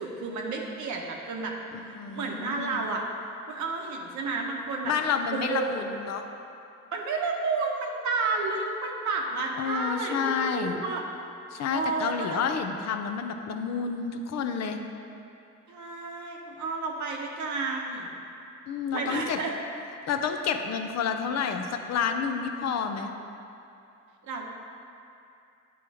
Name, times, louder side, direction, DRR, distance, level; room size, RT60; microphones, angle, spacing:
voice 1, 0.0-1.5 1.9-3.0 3.5-4.9 5.3-5.8 6.9-11.1 11.7-12.4 15.7-18.1 18.9-19.5 24.2-24.5, right 3 dB, 70° right, 0 dB, 1.0 m, -31 dB
voice 2, 2.0-2.9 4.8-6.2 9.6-10.8 11.5-14.8 18.7-19.4 20.1-23.1, left 6 dB, 60° left, 6 dB, 0.6 m, -29 dB
9.2 x 3.1 x 4.8 m, 2.7 s
cardioid pair, 90°, 30 cm